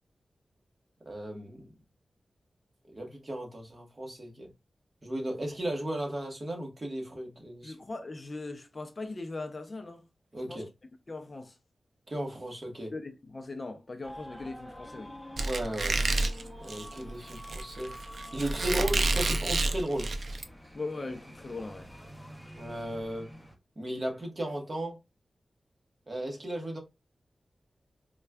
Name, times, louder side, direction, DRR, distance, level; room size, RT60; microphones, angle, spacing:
voice 1, 1.1-1.7 2.9-4.5 5.0-7.7 10.3-10.7 12.1-12.9 15.5-16.0 16.6-17.9 18.3-20.1 22.6-23.3 23.8-25.0 26.1-26.8, right 1 dB, 35° right, 1.2 m, -35 dB
voice 2, 7.6-10.0 10.5-10.6 11.1-11.6 12.9-15.1 20.7-21.9, left 3 dB, 35° left, 0.5 m, -39 dB
sound 1, 14.0-23.5, equal, ahead, 0.7 m, -48 dB
Squeak, 15.4-20.4, right 2 dB, 60° right, 0.4 m, -29 dB
4.3 x 2.3 x 2.2 m
wide cardioid pair, 100°, 0 cm